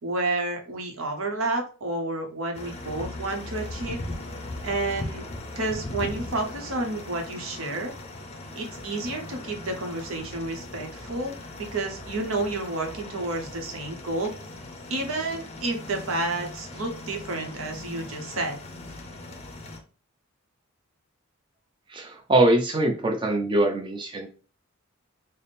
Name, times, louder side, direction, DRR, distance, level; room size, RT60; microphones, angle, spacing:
voice 1, 0.0-4.0 4.6-5.3 5.5-7.9 8.5-14.3 14.9-18.6, right 2 dB, 75° right, 3 dB, 0.8 m, -30 dB
sound 1, 2.5-19.8, left 2 dB, 30° left, 0.5 m, -39 dB
voice 2, 21.9-24.3, right 1 dB, 20° right, 2 dB, 0.5 m, -23 dB
3.4 x 2.0 x 4.1 m, 0.38 s
head